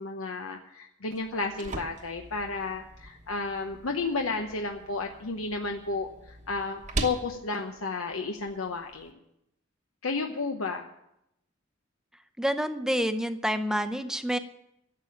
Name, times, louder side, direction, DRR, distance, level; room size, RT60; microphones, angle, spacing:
voice 1, 0.0-9.2 10.0-10.9, left 3 dB, 90° left, 3 dB, 0.9 m, -32 dB
sound 1, 1.1-9.1, right 2 dB, 35° right, 1.1 m, -41 dB
voice 2, 12.4-14.4, equal, 5° right, 9 dB, 0.7 m, -28 dB
11.5 x 7.7 x 9.9 m, 0.83 s
head